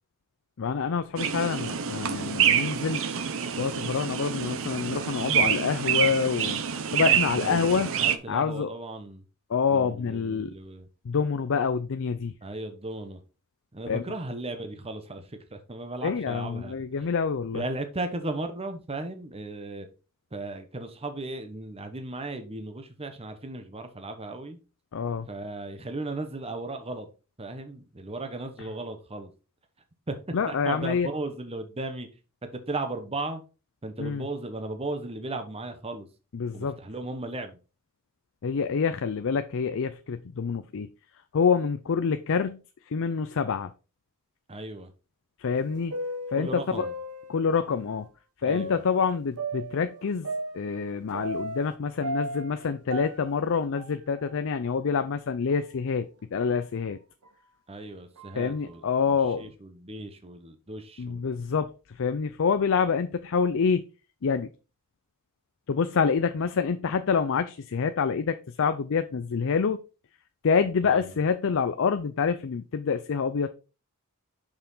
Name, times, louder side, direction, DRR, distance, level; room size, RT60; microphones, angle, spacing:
voice 1, 0.6-3.0 3.6-6.6 6.9-7.9 8.3-8.7 9.5-10.5 11.0-12.3 13.9-14.0 16.0-17.6 24.9-25.3 30.3-31.1 34.0-34.2 36.3-36.8 38.4-40.9 41.3-42.6 42.9-43.7 45.4-45.9 46.3-46.8 47.3-48.1 48.4-50.3 50.5-57.0 58.4-59.5 61.0-63.8 64.2-64.5 65.7-69.8 70.4-73.5, left 5 dB, 60° left, 0.5 m, -27 dB
sound 1, 1.2-8.2, right 8 dB, 65° right, 0.8 m, -27 dB
voice 2, 7.4-9.2 9.7-10.9 12.4-13.2 13.7-17.1 17.5-19.9 20.3-24.6 25.3-27.1 27.4-29.3 30.1-30.2 30.5-32.1 32.7-33.4 33.8-36.1 36.5-37.6 44.5-44.9 46.4-46.9 48.4-48.8 57.7-61.3 70.8-71.1, right 2 dB, 25° right, 1.0 m, -36 dB
sound 2, 45.5-47.7 48.5-51.7 52.0-54.4 54.6-54.7 55.5-55.6 56.4-56.6 57.2-57.3 58.2-58.5, right 1 dB, 85° right, 1.4 m, -36 dB
6.8 x 5.7 x 4.0 m
head